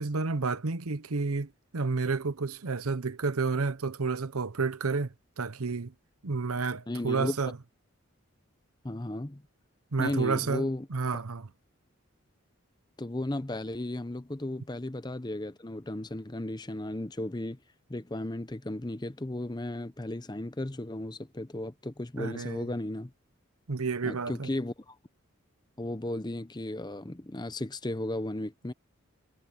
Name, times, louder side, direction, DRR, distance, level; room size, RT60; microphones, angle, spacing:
voice 1, 0.0-5.9 6.2-7.5 9.9-10.6 10.9-11.5 22.2-22.6 23.7-24.5, right 4 dB, 90° right, 0.9 m, -30 dB
voice 2, 6.9-7.4 8.8-9.4 10.0-10.9 13.0-17.6 17.9-23.1 24.0-25.0 25.8-28.7, left 1 dB, 20° left, 0.7 m, -35 dB
head